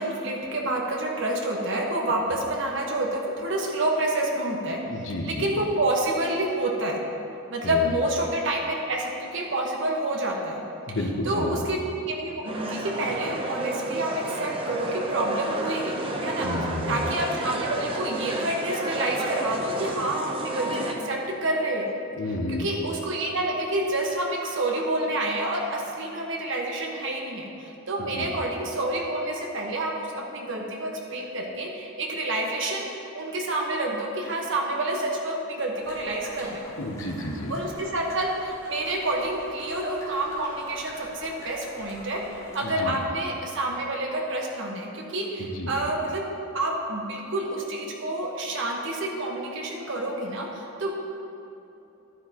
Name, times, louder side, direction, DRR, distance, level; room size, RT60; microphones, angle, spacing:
voice 1, 0.0-4.8 5.2-7.0 7.5-10.6 10.9-11.0 11.2-11.8 12.1-15.9 16.2-16.5 16.9-21.9 22.5-32.9 33.1-36.6 37.5-46.2 46.5-50.9, right 1 dB, 60° right, 0 dB, 1.4 m, -28 dB
voice 2, 4.9-5.5 7.6-7.9 10.9-11.6 16.4-17.1 22.2-22.7 28.0-28.3 36.8-37.6 42.6-43.0 45.4-45.7, left 1 dB, 65° left, 3 dB, 0.9 m, -31 dB
sound 1, 12.4-20.9, right 1 dB, 25° right, 0.8 m, -31 dB
sound 2, 35.8-42.6, left 1 dB, 15° left, 2.4 m, -45 dB
12.0 x 9.7 x 3.0 m, 2.9 s
head